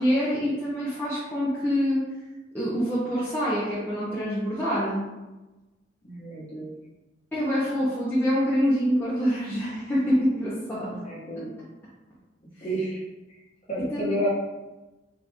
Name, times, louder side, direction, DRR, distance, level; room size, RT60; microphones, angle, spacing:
voice 1, 0.0-2.0 2.5-5.0 7.3-11.0 13.9-14.2, equal, 10° left, -10 dB, 0.7 m, -25 dB
voice 2, 6.0-6.7 10.8-11.5 12.6-13.0 13.7-14.3, right 1 dB, 35° left, -7 dB, 1.4 m, -30 dB
4.1 x 2.4 x 3.4 m, 1.1 s
head